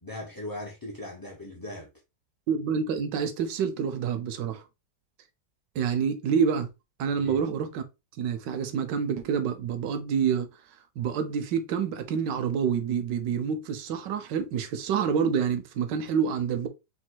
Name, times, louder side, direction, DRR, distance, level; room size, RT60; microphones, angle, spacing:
voice 1, 0.0-1.9 7.2-7.4, left 1 dB, 25° left, 0.5 m, -39 dB
voice 2, 2.5-4.6 5.7-6.7 7.0-7.8 8.2-10.5 11.0-16.7, right 7 dB, 80° right, 1.4 m, -27 dB
4.2 x 2.2 x 4.5 m
omnidirectional pair, 1.9 m